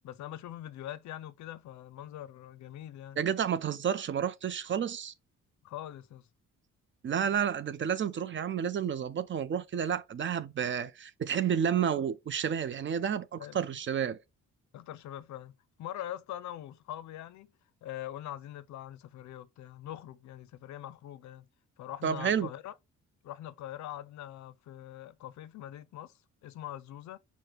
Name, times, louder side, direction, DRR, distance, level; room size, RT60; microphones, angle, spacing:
voice 1, 0.0-3.2 5.6-6.2 13.4-13.6 14.7-15.5 15.8-17.5 17.8-21.4 21.8-22.7 23.2-26.1 26.4-27.2, left 12 dB, 70° left, 0.5 m, -43 dB
voice 2, 3.2-5.1 7.0-14.2 22.0-22.5, right 8 dB, 40° right, 0.5 m, -30 dB
4.9 x 2.1 x 4.3 m
cardioid pair, 90°, 30 cm